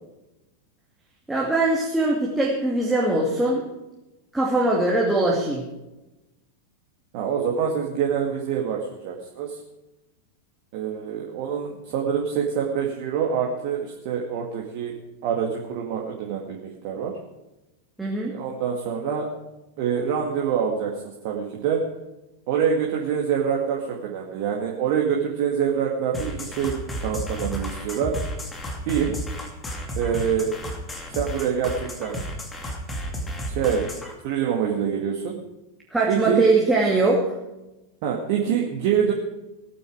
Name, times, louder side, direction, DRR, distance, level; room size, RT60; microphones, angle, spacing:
voice 1, 1.3-3.7 4.3-5.7 18.0-18.3 35.9-37.3, right 2 dB, 5° right, -3 dB, 2.6 m, -21 dB
voice 2, 7.1-9.6 10.7-17.2 18.3-19.3 19.8-21.9 22.5-26.8 27.0-28.2 28.9-29.2 30.0-30.5 31.1-32.3 33.5-33.9 34.2-35.4 36.1-36.4 38.0-39.1, right 7 dB, 45° right, 0 dB, 2.1 m, -25 dB
sound 1, 26.1-34.1, equal, 15° left, 2.7 m, -32 dB
19.0 x 9.4 x 4.9 m, 1.0 s
figure-of-eight pair, 90°, 0 cm